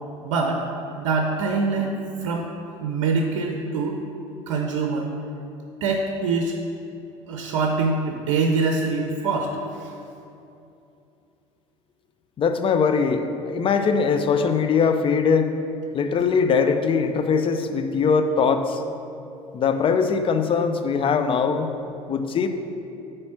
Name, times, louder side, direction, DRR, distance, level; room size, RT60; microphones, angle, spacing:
voice 1, 0.2-0.6 1.0-2.5 2.8-4.0 4.5-5.1 5.8-6.6 7.3-9.5 9.8-9.9, right 4 dB, 65° right, 3 dB, 0.6 m, -24 dB
voice 2, 12.4-15.5 15.9-18.8 19.5-21.7 22.1-22.5, left 5 dB, 35° left, 8 dB, 0.6 m, -21 dB
8.4 x 3.3 x 5.9 m, 2.7 s
figure-of-eight pair, 65°, 16 cm